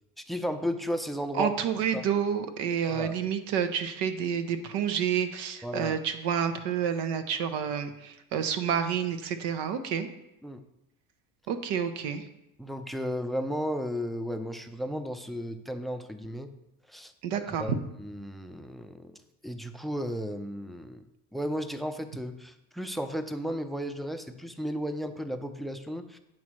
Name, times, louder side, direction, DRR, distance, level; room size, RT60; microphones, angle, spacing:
voice 1, 0.3-1.5 1.9-2.0 2.9-3.1 5.6-6.0 10.4-10.6 12.6-16.5 16.9-17.1 17.4-17.7 18.0-19.2 19.4-21.0 21.3-26.2, equal, ahead, 9 dB, 0.5 m, -34 dB
voice 2, 1.3-10.1 11.5-12.2 17.2-17.8, right 7 dB, 75° right, 9 dB, 0.9 m, -29 dB
8.6 x 3.2 x 6.1 m, 0.88 s
supercardioid pair, 75°, 41 cm